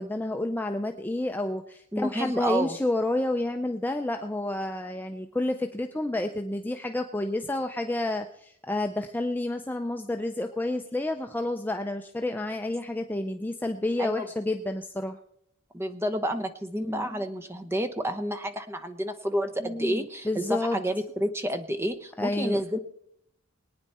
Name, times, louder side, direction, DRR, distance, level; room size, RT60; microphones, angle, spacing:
voice 1, 0.0-15.2 16.9-17.2 19.6-20.8 22.2-22.6, left 2 dB, 10° left, 5 dB, 0.4 m, -30 dB
voice 2, 1.9-2.8 14.0-14.3 15.7-22.8, equal, 10° right, 7 dB, 0.8 m, -30 dB
22.5 x 9.4 x 4.2 m, 0.73 s
head